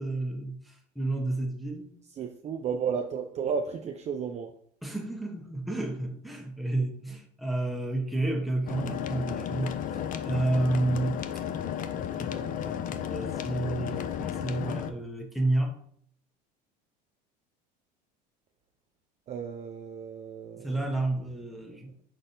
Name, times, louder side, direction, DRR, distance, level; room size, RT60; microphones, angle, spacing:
voice 1, 0.0-1.9 4.8-9.8 10.2-11.2 12.1-15.8 20.6-22.0, right 2 dB, ahead, 1 dB, 0.9 m, -31 dB
voice 2, 2.2-4.5 19.3-20.8, right 6 dB, 30° right, 4 dB, 0.4 m, -33 dB
sound 1, 8.7-14.9, left 9 dB, 40° left, 0.5 m, -33 dB
5.2 x 3.9 x 2.6 m, 0.62 s
supercardioid pair, 95°, 21 cm